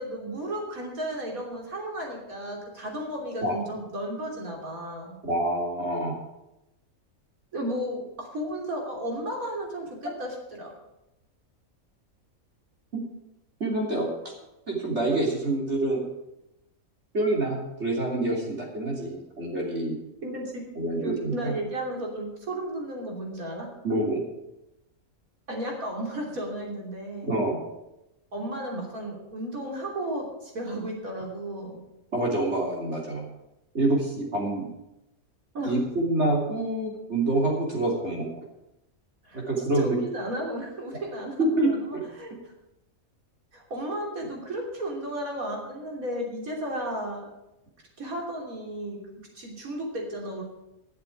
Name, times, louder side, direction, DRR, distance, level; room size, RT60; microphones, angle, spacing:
voice 1, 0.0-5.2 7.5-10.7 20.2-20.6 21.0-23.7 25.5-27.3 28.3-31.8 35.5-35.7 39.2-39.4 39.7-42.3 43.5-47.3 48.0-50.4, right 1 dB, 75° right, -1 dB, 3.6 m, -34 dB
voice 2, 5.2-6.1 10.0-10.1 12.9-13.0 13.6-14.1 14.7-16.0 17.1-20.0 20.8-21.6 23.8-24.2 27.2-27.6 32.1-33.2 33.7-34.7 35.6-38.3 39.3-40.0 41.4-42.0, right 2 dB, 50° right, -2 dB, 3.4 m, -26 dB
12.0 x 7.5 x 8.4 m, 0.91 s
omnidirectional pair, 1.5 m